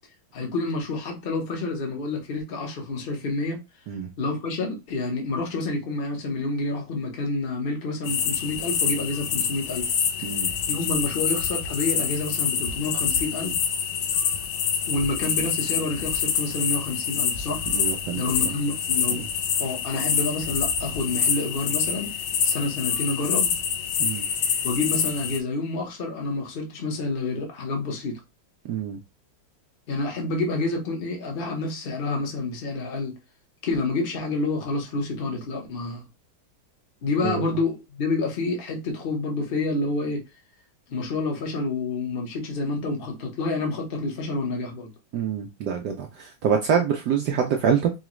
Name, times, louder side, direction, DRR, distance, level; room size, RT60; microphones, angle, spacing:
voice 1, 0.3-3.6 4.2-9.9 10.7-13.6 14.9-17.6 18.1-19.2 19.6-22.1 22.4-23.5 24.6-28.2 29.9-33.2 33.6-36.1 37.0-40.2 40.9-44.9, left 3 dB, 40° left, 0.8 m, -28 dB
sound 1, 8.1-25.4, left 7 dB, 75° left, 1.1 m, -26 dB
voice 2, 17.7-18.2 19.1-19.2 24.0-24.3 28.7-29.0 37.2-37.4 45.1-47.9, right 7 dB, 75° right, 0.9 m, -25 dB
4.9 x 2.3 x 3.0 m
omnidirectional pair, 2.3 m